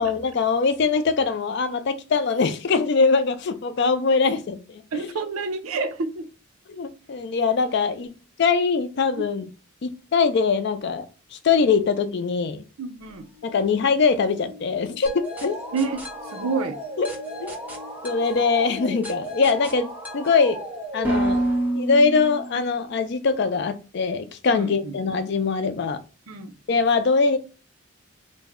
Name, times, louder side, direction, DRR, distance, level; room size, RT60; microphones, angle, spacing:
voice 1, 0.0-5.1 6.7-8.1 8.4-9.5 9.8-11.1 11.3-12.6 13.4-15.6 17.0-17.1 17.4-17.5 18.0-20.6 20.9-21.4 21.8-26.0 26.7-27.4, left 4 dB, 55° left, 0.4 m, -22 dB
voice 2, 4.9-6.3 9.2-9.3 12.8-13.3 15.7-16.0 16.3-16.8 24.5-24.9 26.3-26.5, right 4 dB, 90° right, 0.5 m, -29 dB
sound 1, 13.0-20.6 21.3-21.4 22.4-22.5, left 4 dB, 80° left, 0.8 m, -49 dB
sound 2, 15.1-22.8, right 1 dB, 10° right, 0.6 m, -30 dB
3.3 x 2.1 x 3.5 m
head